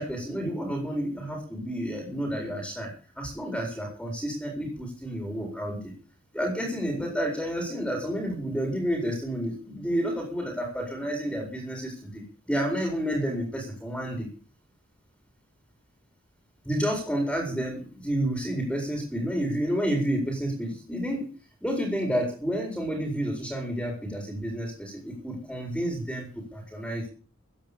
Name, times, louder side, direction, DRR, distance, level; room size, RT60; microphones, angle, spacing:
voice 1, 0.0-2.9 3.2-5.9 6.3-14.3 16.6-21.3 21.6-27.1, equal, 5° left, 0 dB, 4.5 m, -30 dB
15.5 x 10.0 x 6.9 m, 0.40 s
head